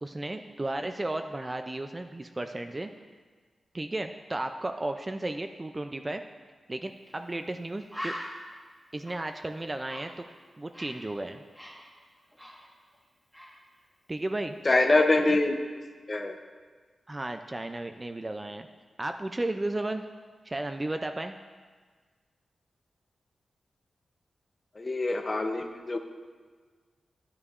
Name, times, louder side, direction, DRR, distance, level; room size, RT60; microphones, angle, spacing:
voice 1, 0.0-2.9 3.7-6.2 6.7-8.1 8.9-10.2 10.6-11.4 14.1-14.6 14.9-15.0 17.1-18.7 19.0-20.0 20.4-21.3, right 2 dB, 20° right, 6 dB, 0.3 m, -34 dB
Bird, 7.0-7.2 7.5-7.6 7.9-11.1 11.4-13.0 13.3-13.6, equal, ahead, 1.1 m, -42 dB
voice 2, 14.6-15.6 16.1-16.4 24.8-26.0, left 2 dB, 25° left, 5 dB, 0.6 m, -24 dB
12.5 x 9.6 x 2.4 m, 1.5 s
wide cardioid pair, 155°, 0 cm